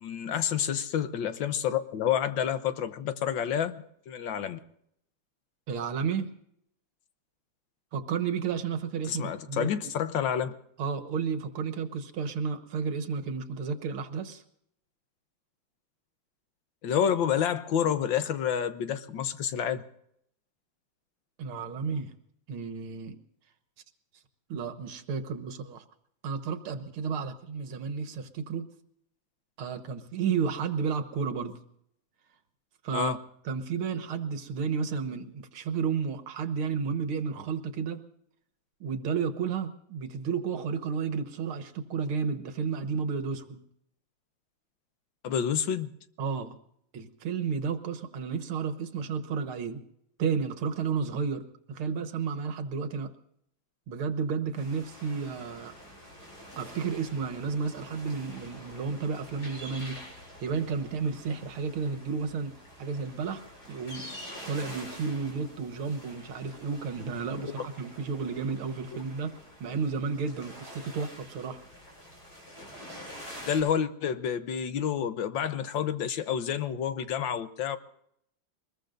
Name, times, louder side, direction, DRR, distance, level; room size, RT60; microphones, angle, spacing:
voice 1, 0.0-3.7 4.1-4.6 9.1-10.5 16.8-19.8 32.9-33.2 45.2-45.9 67.3-67.5 73.5-77.8, left 8 dB, 70° left, 11 dB, 1.6 m, -29 dB
voice 2, 5.7-6.3 7.9-9.7 10.8-14.4 21.4-22.1 22.5-23.2 24.5-25.8 26.2-28.7 29.6-31.6 32.8-33.2 33.5-38.0 38.8-43.6 46.2-46.6 46.9-49.8 50.2-53.1 53.9-55.7 56.6-60.1 60.4-62.5 62.8-63.4 63.7-64.1 64.5-69.3 69.6-71.6, right 5 dB, 85° right, 9 dB, 2.2 m, -32 dB
sound 1, 54.5-73.6, equal, 45° left, 8.4 m, -47 dB
24.0 x 21.0 x 2.6 m, 0.72 s
omnidirectional pair, 2.3 m